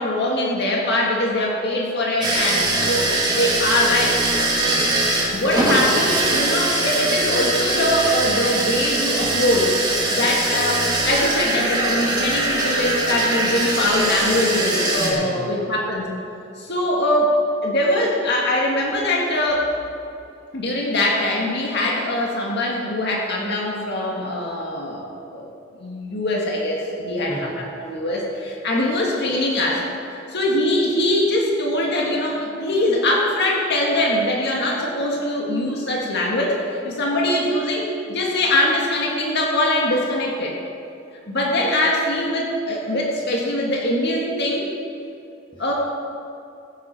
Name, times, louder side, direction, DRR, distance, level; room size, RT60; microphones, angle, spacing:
voice 1, 0.0-4.2 5.3-9.8 10.1-16.2 16.6-19.7 20.5-25.1 25.3-25.5 25.7-29.9 30.3-40.6 41.3-44.7 45.6-45.7, left 1 dB, 60° left, -2 dB, 1.9 m, -22 dB
sound 1, 2.2-15.1, right 2 dB, 20° right, 2.2 m, -22 dB
voice 2, 4.6-5.1 15.0-15.4 27.3-27.5 45.5-45.7, equal, 25° left, -4 dB, 1.6 m, -34 dB
15.0 x 10.0 x 4.4 m, 2.7 s
head